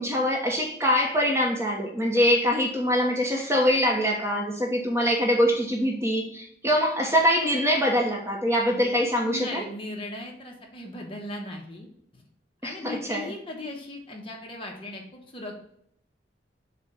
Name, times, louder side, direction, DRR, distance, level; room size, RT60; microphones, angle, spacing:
voice 1, 0.0-9.6 12.6-13.3, equal, 15° right, 0 dB, 1.0 m, -24 dB
voice 2, 9.2-11.9 12.1-12.3 12.6-15.6, left 1 dB, 30° left, 0 dB, 1.2 m, -38 dB
7.1 x 2.5 x 5.6 m, 0.69 s
head